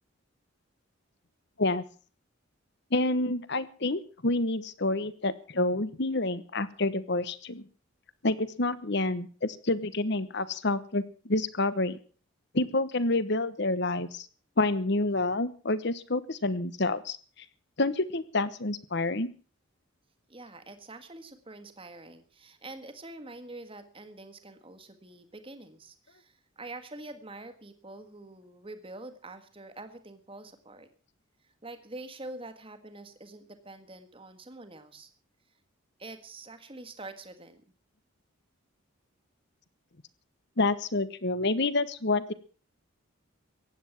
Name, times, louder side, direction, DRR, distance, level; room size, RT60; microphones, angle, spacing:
voice 1, 2.9-7.7 8.2-12.0 12.5-14.3 14.6-17.2 17.8-19.3 40.6-42.3, left 2 dB, 55° left, 15 dB, 1.1 m, -28 dB
voice 2, 20.3-30.9 31.4-35.1 36.0-37.6, right 2 dB, 25° right, 8 dB, 1.6 m, -46 dB
16.0 x 10.0 x 7.2 m, 0.41 s
head